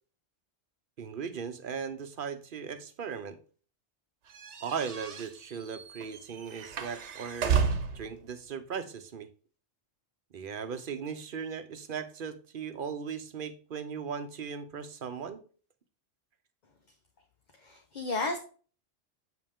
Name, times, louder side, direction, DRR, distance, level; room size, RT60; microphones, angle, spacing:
voice 1, 1.0-3.4 4.6-7.7 7.9-9.3 10.3-15.4, right 6 dB, 50° right, 10 dB, 0.9 m, -38 dB
sound 1, 4.3-8.1, right 6 dB, 80° right, 1.2 m, -32 dB
voice 2, 17.6-18.4, left 3 dB, 45° left, 4 dB, 0.9 m, -33 dB
7.8 x 5.4 x 3.6 m, 0.40 s
omnidirectional pair, 1.2 m